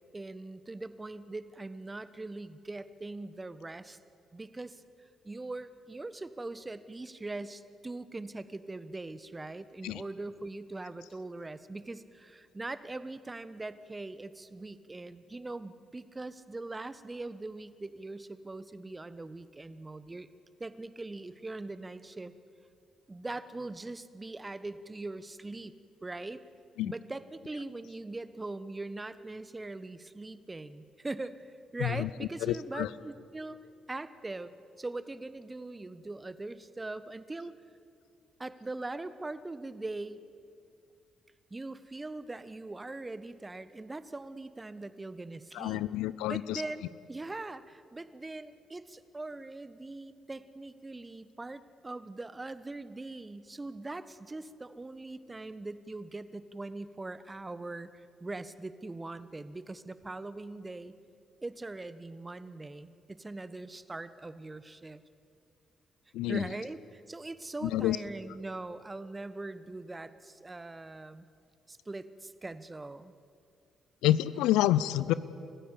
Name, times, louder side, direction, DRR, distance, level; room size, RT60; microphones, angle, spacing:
voice 1, 0.1-4.0 4.3-4.8 5.2-20.3 20.6-22.3 23.1-25.7 26.0-26.4 26.8-33.6 33.9-37.6 38.4-40.2 41.5-45.8 46.3-60.9 61.4-65.0 66.3-71.3 71.7-73.1, right 2 dB, 25° right, 14 dB, 1.2 m, -41 dB
voice 2, 45.6-46.6 66.1-66.4 67.6-68.0 74.0-75.1, left 14 dB, 70° left, 17 dB, 0.6 m, -28 dB
29.5 x 15.0 x 8.6 m, 2.5 s
hypercardioid pair, 40°, 0 cm